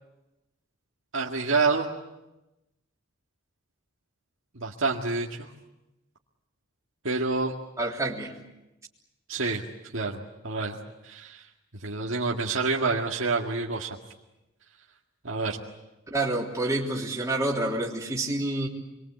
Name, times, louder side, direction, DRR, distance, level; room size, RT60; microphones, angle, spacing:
voice 1, 1.1-1.9 4.5-5.5 7.0-7.5 9.3-9.6 9.9-10.8 11.0-11.4 11.8-13.9 15.2-15.6, right 3 dB, 70° right, -2 dB, 2.0 m, -27 dB
voice 2, 7.8-8.3 16.1-18.7, right 2 dB, 15° right, -4 dB, 3.5 m, -28 dB
27.0 x 23.0 x 8.3 m, 0.96 s
head